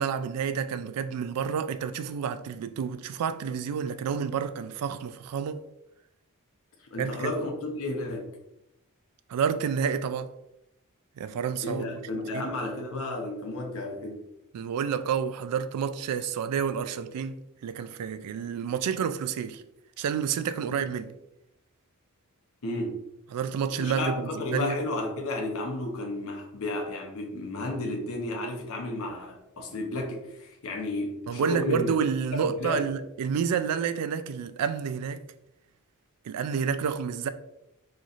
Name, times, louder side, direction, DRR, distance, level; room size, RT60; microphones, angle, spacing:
voice 1, 0.0-5.6 7.0-7.3 9.3-10.3 11.2-11.9 12.3-12.5 14.5-19.6 20.0-21.1 23.3-24.8 31.3-35.2 36.2-37.3, right 7 dB, 90° right, 0.3 m, -29 dB
voice 2, 6.8-8.4 11.6-14.3 20.7-20.8 22.6-23.0 23.8-32.0 32.3-32.9, left 2 dB, 65° left, 0.8 m, -32 dB
4.0 x 3.1 x 2.4 m
head